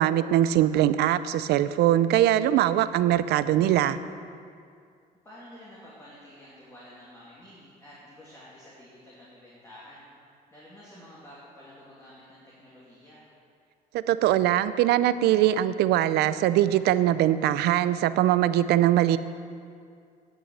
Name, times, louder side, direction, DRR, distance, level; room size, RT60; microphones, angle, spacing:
voice 1, 0.0-4.0 13.9-19.2, right 12 dB, 75° right, 14 dB, 0.5 m, -22 dB
voice 2, 5.2-10.1 10.5-13.3, left 1 dB, 15° left, -8 dB, 2.7 m, -50 dB
11.0 x 6.2 x 7.8 m, 2.3 s
cardioid pair, 110°, 17 cm